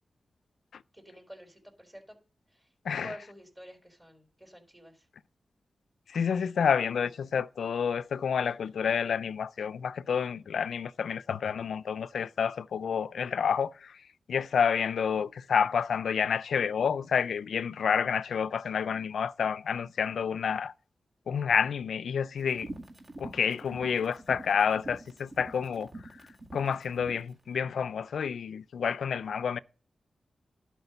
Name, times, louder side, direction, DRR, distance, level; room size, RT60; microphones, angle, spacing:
voice 1, 0.9-2.2 2.5-2.7 3.0-5.1, equal, 20° right, 3.8 m, -49 dB
voice 2, 6.1-14.0 14.3-20.7 21.3-22.7 23.2-25.9 26.5-29.6, left 7 dB, 90° left, 0.4 m, -29 dB
sound 1, 22.4-27.3, right 2 dB, 40° right, 1.8 m, -45 dB
11.0 x 4.5 x 6.7 m
cardioid pair, 70°, 0 cm